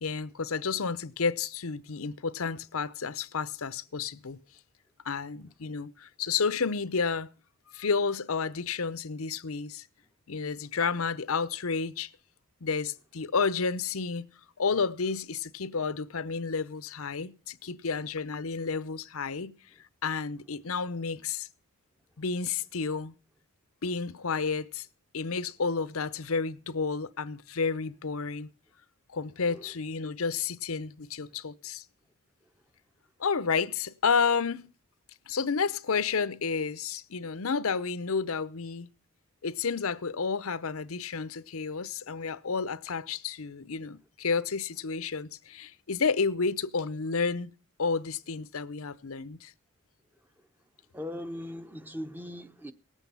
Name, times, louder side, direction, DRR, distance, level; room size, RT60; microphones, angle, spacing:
voice 1, 0.0-4.4 5.0-7.3 7.7-9.9 10.3-12.1 12.6-14.3 14.6-19.5 20.0-21.5 22.2-23.1 23.8-24.9 25.1-28.5 29.1-31.8 33.2-34.7 35.3-38.9 39.4-47.5 47.8-49.5, left 5 dB, 80° left, 0.8 m, -31 dB
voice 2, 50.9-52.7, left 1 dB, 10° right, 0.8 m, -39 dB
18.5 x 8.2 x 5.6 m
head